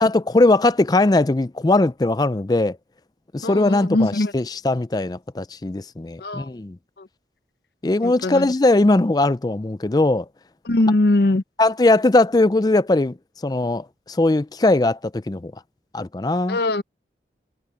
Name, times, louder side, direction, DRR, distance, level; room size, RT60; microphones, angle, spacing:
voice 1, 0.0-2.8 3.3-6.8 7.8-10.3 11.6-13.2 13.4-15.5 15.9-16.6, left 2 dB, 20° left, 0.4 m, -19 dB
voice 2, 3.4-4.3 6.2-6.5 7.0-7.1 8.0-8.5 10.6-11.4 16.5-16.8, left 2 dB, 65° left, 0.7 m, -21 dB
head